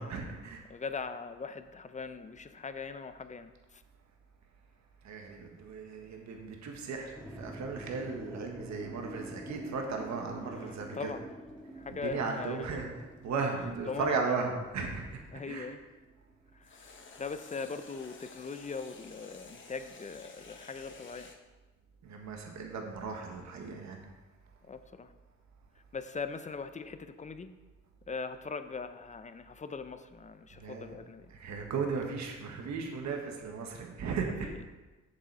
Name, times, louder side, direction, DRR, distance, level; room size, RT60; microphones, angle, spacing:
voice 1, 0.0-0.6 5.0-11.1 11.9-15.7 22.0-24.0 30.6-31.0 31.3-34.5, right 4 dB, 65° right, 2 dB, 1.5 m, -36 dB
voice 2, 0.7-3.5 10.7-11.2 11.8-12.8 13.9-14.2 15.3-15.8 16.6-16.9 17.2-21.3 24.7-25.1 25.9-27.5 28.1-31.3 34.4-34.6, left 4 dB, 25° left, 10 dB, 0.6 m, -40 dB
sound 1, 7.2-17.3, equal, ahead, 1.7 m, -48 dB
sound 2, 10.3-15.5 16.6-21.4, left 4 dB, 40° left, 1.1 m, -53 dB
7.6 x 6.9 x 4.7 m, 1.2 s
cardioid pair, 90°, 30 cm